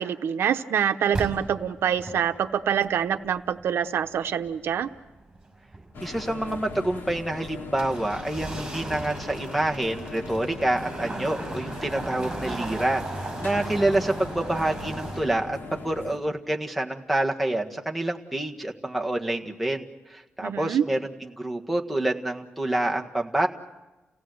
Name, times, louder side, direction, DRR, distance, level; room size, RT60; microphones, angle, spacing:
voice 1, 0.0-4.9 20.4-20.8, right 8 dB, 85° right, 10 dB, 0.9 m, -25 dB
sound 1, 1.1-15.2, right 2 dB, 20° right, 5.9 m, -37 dB
sound 2, 5.9-16.2, left 4 dB, 70° left, 2.5 m, -40 dB
voice 2, 6.0-19.8 20.1-23.5, right 1 dB, ahead, 4 dB, 1.6 m, -27 dB
30.0 x 17.0 x 7.8 m, 1.1 s
wide cardioid pair, 130°, 4 cm